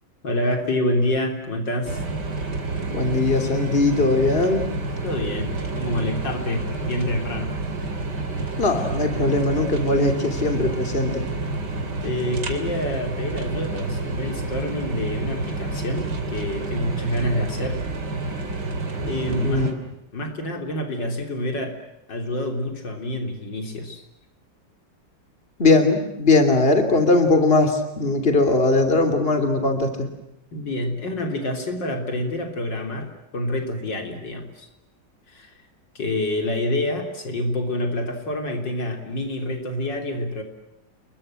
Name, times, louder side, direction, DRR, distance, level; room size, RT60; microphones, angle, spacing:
voice 1, 0.2-2.0 5.0-7.5 12.0-17.8 19.0-19.7 20.1-21.8 22.1-24.0 30.5-34.7 35.3-35.5 36.0-40.4, left 1 dB, 75° left, 5 dB, 4.1 m, -27 dB
sound 1, 1.8-19.7, right 3 dB, 65° right, 3.4 m, -29 dB
voice 2, 2.9-4.7 8.6-11.2 19.3-19.7 25.6-30.1, left 2 dB, 30° left, 6 dB, 3.2 m, -20 dB
29.5 x 22.5 x 7.7 m, 0.86 s
omnidirectional pair, 2.0 m